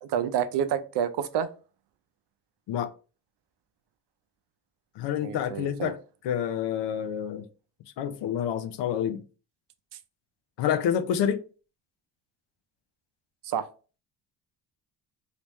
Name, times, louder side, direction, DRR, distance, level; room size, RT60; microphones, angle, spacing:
voice 1, 0.0-1.5 5.2-5.9 13.4-13.7, right 9 dB, 70° right, 0.6 m, -28 dB
voice 2, 5.0-6.0 6.2-7.4 8.0-9.2 10.6-11.4, left 9 dB, 75° left, 0.6 m, -28 dB
3.4 x 2.9 x 3.0 m
cardioid pair, 145°, 42 cm